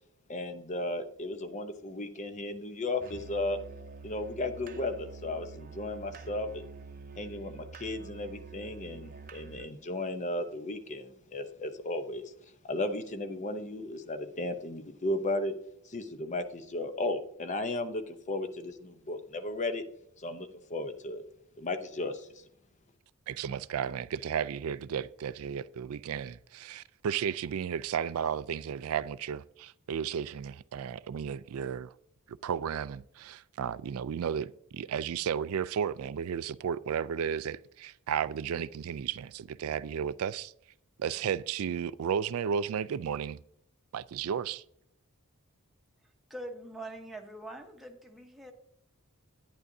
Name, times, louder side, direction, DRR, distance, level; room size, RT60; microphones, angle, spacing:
voice 1, 0.3-3.6 4.0-6.6 7.2-12.3 12.6-15.6 15.8-19.8 20.2-21.2 21.6-22.3, left 2 dB, 35° left, 0.7 m, -35 dB
Musical instrument, 3.0-9.8, right 4 dB, 40° right, 0.7 m, -47 dB
voice 2, 23.3-31.9 32.3-40.5 41.0-43.4 43.9-44.6, right 8 dB, 70° right, 0.3 m, -33 dB
voice 3, 46.3-48.5, right 1 dB, ahead, 1.0 m, -43 dB
11.5 x 9.4 x 2.7 m
head